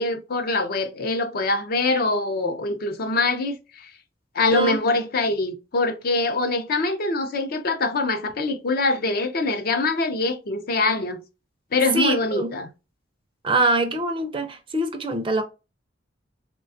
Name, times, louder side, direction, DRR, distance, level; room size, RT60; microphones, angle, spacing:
voice 1, 0.0-3.9 4.3-11.2 11.7-12.7, left 3 dB, 50° left, 0.5 m, -24 dB
voice 2, 11.9-12.5 13.4-15.4, right 2 dB, 25° right, 0.4 m, -24 dB
3.4 x 2.2 x 2.5 m
head